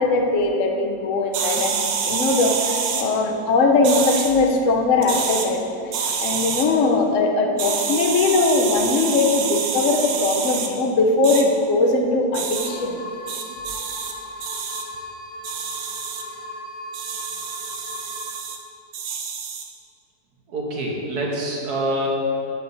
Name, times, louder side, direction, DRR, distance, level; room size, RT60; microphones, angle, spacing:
voice 1, 0.0-5.6 5.8-13.0, left 3 dB, 60° left, 3 dB, 0.9 m, -20 dB
sound 1, 1.3-3.1 3.8-4.3 5.0-5.5 5.9-6.7 7.6-10.7 11.2-11.4 12.3-12.7 13.3-14.1 14.4-14.8 15.4-16.2 16.9-18.6 18.9-19.7, right 6 dB, 80° right, 1.4 m, -27 dB
sound 2, 12.6-18.4, left 1 dB, 25° left, 1.0 m, -37 dB
voice 2, 20.5-22.1, right 1 dB, 60° right, -2 dB, 1.6 m, -26 dB
8.7 x 8.6 x 2.7 m, 2.6 s
omnidirectional pair, 2.0 m